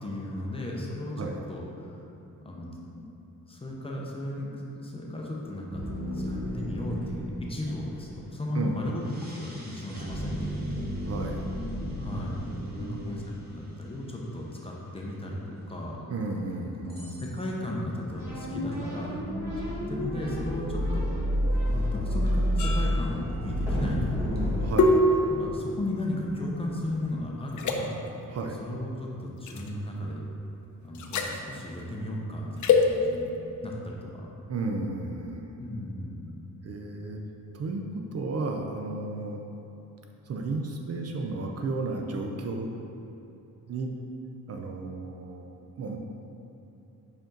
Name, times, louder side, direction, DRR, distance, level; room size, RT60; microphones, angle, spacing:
voice 1, 0.0-1.2 1.5-2.0 2.4-3.1 3.5-5.8 6.1-10.9 12.0-16.0 16.8-19.3 19.7-21.3 21.7-24.6 25.3-28.0 28.6-30.3 30.8-33.3 33.6-34.3 35.6-36.3, left 1 dB, 15° left, -3 dB, 0.6 m, -35 dB
sound 1, 5.7-7.9 8.9-13.3 15.0-15.1 15.7-15.8 16.9-17.4 18.1-24.7, equal, 30° right, 1.0 m, -31 dB
voice 2, 8.5-8.9 11.0-11.4 12.5-13.2 16.1-17.0 24.7-25.0 28.3-28.6 34.5-35.5 36.6-37.2 37.5-39.4 40.3-42.7 43.7-43.9 44.5-45.5 45.8-46.0, right 3 dB, 50° right, 2 dB, 0.5 m, -33 dB
sound 2, 18.2-25.7, equal, 10° right, 1.5 m, -36 dB
sound 3, 22.6-27.1 27.5-27.8 29.5-29.7 30.9-31.4 32.6-32.9, left 3 dB, 60° left, 0.5 m, -26 dB
5.2 x 4.9 x 3.8 m, 3.0 s
wide cardioid pair, 160°, 33 cm